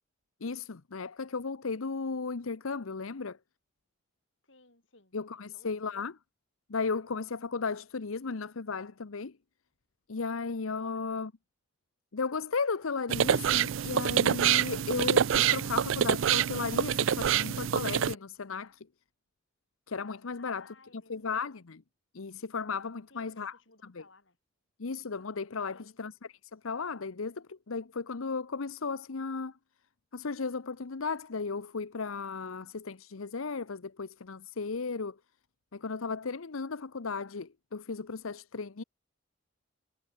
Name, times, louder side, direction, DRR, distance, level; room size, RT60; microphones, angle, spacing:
voice 1, 0.4-3.4 5.1-6.1 6.7-9.3 10.1-11.3 12.1-18.9 19.9-21.8 22.1-23.5 23.9-24.0 24.8-29.5 30.1-35.2 35.7-38.8, left 4 dB, 85° left, 0.8 m, -35 dB
voice 2, 4.4-6.1 10.9-11.3 20.4-21.5 23.1-24.4 25.7-26.0, left 3 dB, 65° left, 6.2 m, -61 dB
sound 1, 13.1-18.1, right 9 dB, 75° right, 0.4 m, -26 dB
head